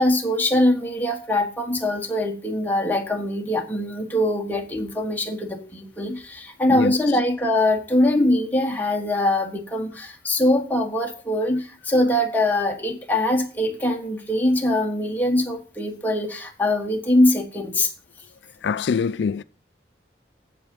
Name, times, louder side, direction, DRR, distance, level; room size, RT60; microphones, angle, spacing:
voice 1, 0.0-17.9, left 1 dB, 10° left, 1.3 m, -22 dB
voice 2, 18.6-19.4, left 6 dB, 85° left, 0.3 m, -24 dB
8.1 x 7.7 x 5.3 m
head